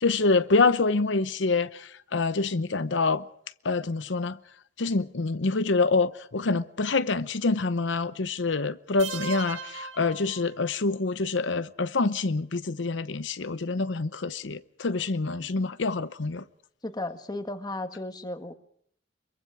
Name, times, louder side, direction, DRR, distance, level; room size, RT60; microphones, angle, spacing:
voice 1, 0.0-3.2 3.6-4.4 4.8-16.4, left 3 dB, 75° left, 0.8 m, -26 dB
sound 1, 9.0-11.0, right 5 dB, 85° right, 1.3 m, -39 dB
voice 2, 16.8-18.5, left 2 dB, 20° left, 1.7 m, -34 dB
25.0 x 23.0 x 4.9 m
head